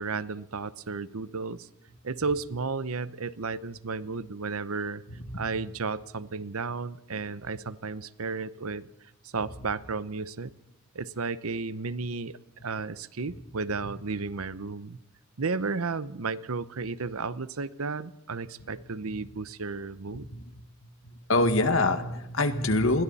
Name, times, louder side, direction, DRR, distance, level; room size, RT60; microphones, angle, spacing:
voice 1, 0.0-1.7 2.0-5.0 5.4-8.9 9.2-10.5 10.9-15.0 15.4-20.3, right 4 dB, 75° right, 16 dB, 0.8 m, -33 dB
voice 2, 5.1-5.5 20.1-20.6 21.0-23.0, left 2 dB, 65° left, 8 dB, 1.9 m, -26 dB
29.5 x 21.5 x 4.2 m, 0.82 s
head